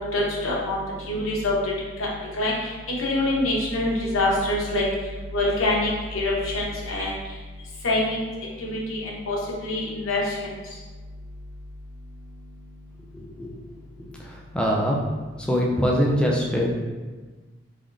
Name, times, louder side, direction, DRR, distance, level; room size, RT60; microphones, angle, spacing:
voice 1, 0.1-0.8 1.1-1.7 2.0-2.1 2.4-4.8 5.3-7.1 7.8-8.2 8.6-10.5, left 2 dB, 80° left, -4 dB, 0.9 m, -25 dB
voice 2, 13.1-13.5 14.0-14.1 14.5-15.0 15.5-16.7, equal, 5° left, -2 dB, 0.3 m, -23 dB
3.5 x 3.5 x 2.5 m, 1.3 s
head